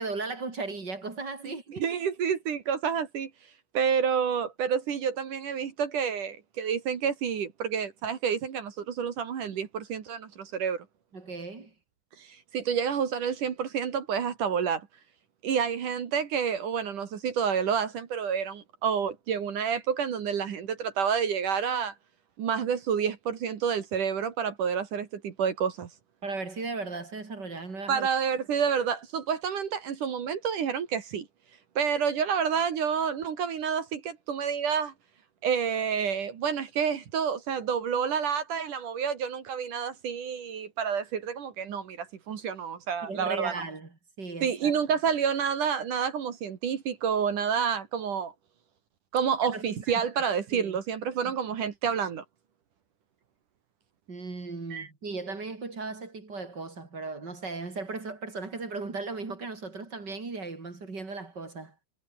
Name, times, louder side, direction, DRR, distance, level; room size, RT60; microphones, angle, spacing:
voice 1, 0.0-1.8 11.1-11.7 26.2-28.1 43.0-43.9 44.2-44.7 49.4-49.8 50.5-50.8 54.1-61.7, right 3 dB, 25° right, 4.1 m, -36 dB
voice 2, 1.8-3.3 3.7-10.9 12.2-14.9 15.4-21.9 22.4-25.9 27.9-31.2 31.8-34.9 35.4-43.6 44.4-48.3 49.1-52.2 54.7-54.9, right 7 dB, 50° right, 3.0 m, -29 dB
omnidirectional pair, 5.3 m